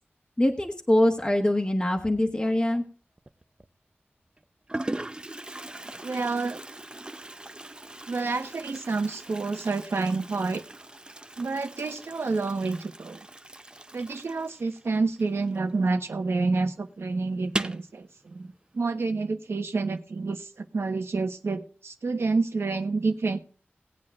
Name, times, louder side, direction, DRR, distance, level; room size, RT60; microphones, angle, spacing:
voice 1, 0.4-2.8, left 1 dB, 20° left, 3 dB, 1.3 m, -23 dB
Toilet flush, 3.2-3.7 4.4-4.5 4.7-16.0 16.2-16.3 16.6-16.7 17.4-17.9, right 1 dB, 20° right, 0.6 m, -39 dB
voice 2, 6.0-6.6 8.1-10.6 11.4-13.3 13.9-18.5 18.7-23.4, right 3 dB, 90° right, 7 dB, 1.1 m, -28 dB
19.0 x 8.9 x 2.4 m, 0.39 s
wide cardioid pair, 80°, 4 cm